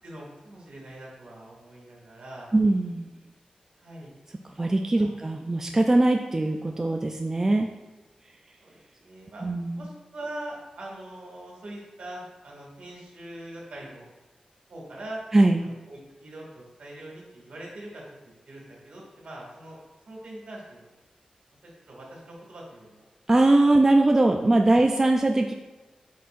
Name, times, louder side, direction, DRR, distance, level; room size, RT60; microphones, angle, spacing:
voice 1, 0.0-2.5 3.8-4.1 5.0-5.1 8.6-9.4 9.8-14.1 14.7-15.2 15.6-18.0 18.5-19.8 20.1-20.9 21.9-23.0, right 1 dB, 65° right, -3 dB, 2.1 m, -42 dB
voice 2, 2.5-3.1 4.6-7.7 9.4-9.9 15.3-15.6 23.3-25.5, right 2 dB, 20° right, 3 dB, 0.3 m, -21 dB
8.4 x 5.5 x 2.5 m, 1.2 s
wide cardioid pair, 155°, 2 cm